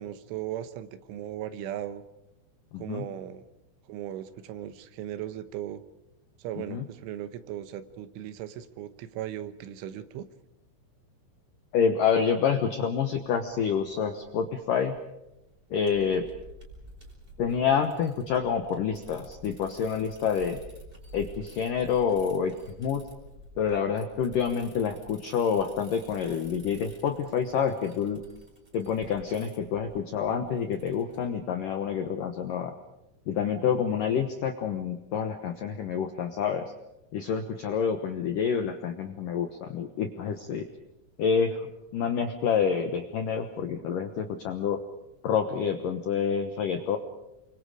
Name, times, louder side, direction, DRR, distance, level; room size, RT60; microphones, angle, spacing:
voice 1, 0.0-2.0 2.8-3.5 3.8-5.8 6.4-10.3, right 11 dB, 80° right, 12 dB, 3.5 m, -37 dB
voice 2, 2.7-3.0 6.7-6.8 11.7-15.0 15.7-16.3 17.4-20.6 21.1-22.5 22.8-23.1 23.6-28.2 28.7-32.7 33.3-36.7 37.1-40.7 41.2-41.7 41.9-44.8 45.2-47.0, left 7 dB, 75° left, 7 dB, 1.9 m, -28 dB
sound 1, 13.0-31.3, right 1 dB, 10° right, 3.9 m, -51 dB
29.5 x 24.5 x 5.0 m, 0.94 s
omnidirectional pair, 5.6 m